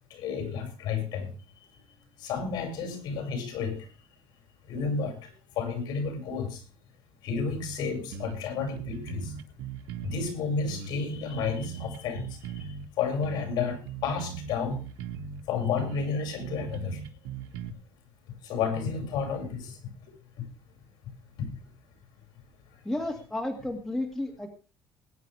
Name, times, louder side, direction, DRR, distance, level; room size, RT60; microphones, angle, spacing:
voice 1, 0.1-1.7 2.2-3.9 4.7-6.6 7.2-9.3 10.0-14.8 15.5-17.0 18.4-19.8 20.4-20.5 21.4-21.6 22.7-22.8, left 5 dB, 65° left, 5 dB, 5.6 m, -32 dB
sound 1, 7.5-7.8 8.1-10.3 10.7-12.9 13.2-15.4 15.8-17.7, right 7 dB, 85° right, 1.7 m, -39 dB
voice 2, 22.8-24.5, left 1 dB, 5° left, 1 dB, 1.9 m, -32 dB
20.5 x 10.0 x 3.4 m, 0.33 s
cardioid pair, 175°, 8 cm